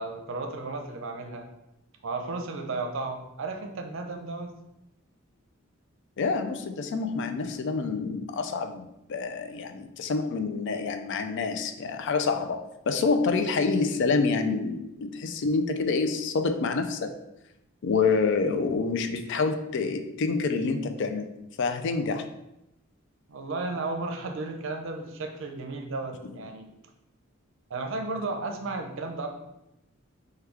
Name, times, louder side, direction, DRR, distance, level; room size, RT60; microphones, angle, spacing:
voice 1, 0.0-1.5 2.0-4.5 23.3-26.7 27.7-29.3, right 3 dB, 65° right, 4 dB, 0.6 m, -34 dB
voice 2, 6.2-17.1 17.8-22.2, left 4 dB, 60° left, 8 dB, 0.4 m, -27 dB
4.5 x 2.3 x 3.4 m, 0.88 s
head